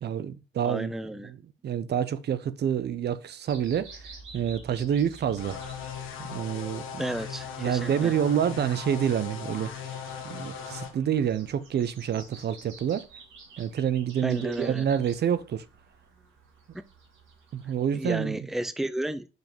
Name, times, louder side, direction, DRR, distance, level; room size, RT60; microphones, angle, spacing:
voice 1, 0.0-0.9 1.2-1.4 1.6-5.6 6.2-7.0 7.6-10.0 10.2-13.1 13.6-15.6 17.5-18.4, right 9 dB, 55° right, 0.7 m, -28 dB
voice 2, 0.6-1.3 7.0-8.1 14.2-14.8 17.9-19.3, right 1 dB, ahead, 0.6 m, -32 dB
sound 1, 3.5-18.1, right 4 dB, 85° right, 3.0 m, -51 dB
sound 2, 5.4-10.9, left 7 dB, 85° left, 1.5 m, -38 dB
6.3 x 5.1 x 5.1 m
cardioid pair, 90°, 20 cm